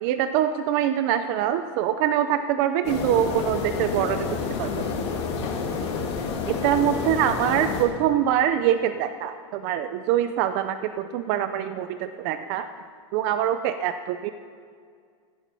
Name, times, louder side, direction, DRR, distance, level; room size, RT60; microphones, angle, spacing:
voice 1, 0.0-4.7 6.5-12.7 13.1-14.3, right 10 dB, 40° right, 10 dB, 0.5 m, -24 dB
sound 1, 2.8-7.8, left 5 dB, 70° left, 2.5 m, -29 dB
14.5 x 10.5 x 5.6 m, 2.1 s
supercardioid pair, 165°, 15 cm